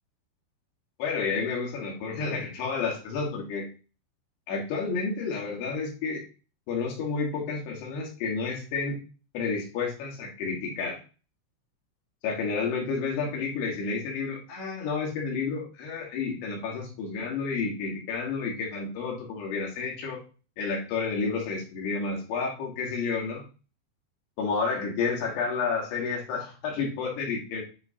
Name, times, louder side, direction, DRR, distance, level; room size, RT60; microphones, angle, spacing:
voice 1, 1.0-3.7 4.5-6.2 6.7-9.0 9.3-11.0 12.2-20.2 20.6-23.4 24.4-27.6, left 4 dB, 65° left, -1 dB, 3.3 m, -30 dB
9.7 x 3.8 x 2.8 m, 0.35 s
omnidirectional pair, 5.7 m